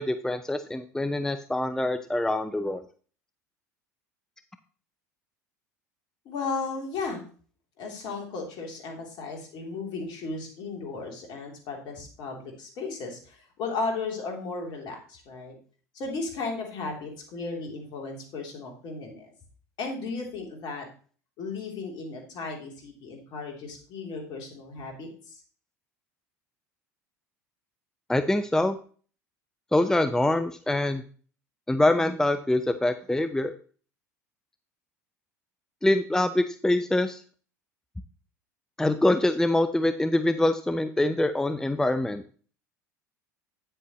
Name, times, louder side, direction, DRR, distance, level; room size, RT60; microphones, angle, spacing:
voice 1, 0.0-2.8 28.1-28.8 29.7-31.0 31.7-33.5 35.8-37.2 38.8-42.2, left 1 dB, 5° left, 10 dB, 0.6 m, -24 dB
voice 2, 6.2-7.2 7.8-15.5 15.9-19.3 19.8-20.8 21.4-25.4, left 3 dB, 55° left, 1 dB, 3.3 m, -35 dB
9.6 x 7.7 x 3.1 m, 0.41 s
figure-of-eight pair, 70°, 9 cm